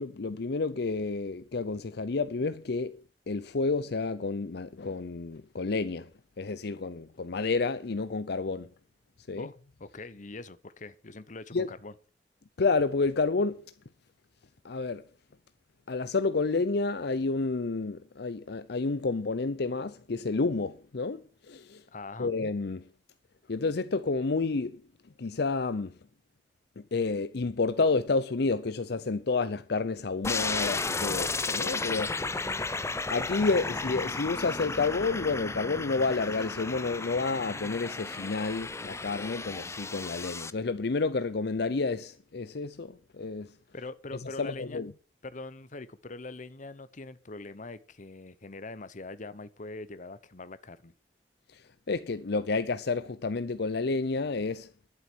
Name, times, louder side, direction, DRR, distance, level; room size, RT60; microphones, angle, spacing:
voice 1, 0.0-3.0 3.3-6.1 6.4-8.7 9.3-9.5 11.5-11.7 12.6-13.6 14.6-15.0 15.9-21.8 22.2-22.8 23.5-24.8 25.2-25.9 26.8-32.7 33.1-43.5 44.4-44.9 51.5-51.6 51.9-54.7, left 3 dB, 65° left, 0.6 m, -30 dB
voice 2, 9.4-11.9 21.9-22.3 43.7-44.8 45.2-50.9, left 3 dB, 45° left, 1.0 m, -43 dB
sound 1, 30.2-40.5, left 3 dB, 15° left, 0.6 m, -34 dB
11.5 x 7.8 x 7.9 m
head